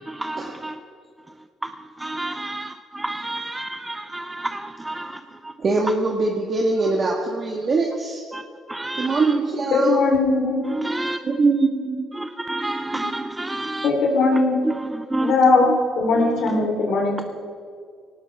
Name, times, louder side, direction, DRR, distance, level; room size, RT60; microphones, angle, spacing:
voice 1, 0.1-0.8 2.0-5.2 8.3-8.4 8.7-9.2 10.7-11.2 12.2-13.9 14.6-15.3, right 2 dB, 10° right, 0.6 m, -29 dB
voice 2, 5.6-8.2 9.0-10.0 11.2-12.1, right 3 dB, 40° right, 1.8 m, -22 dB
voice 3, 9.7-10.7 12.9-13.0 13.8-14.6 15.2-15.7 16.0-17.2, left 3 dB, 70° left, 3.8 m, -19 dB
19.0 x 18.0 x 3.7 m
cardioid pair, 100°, 0 cm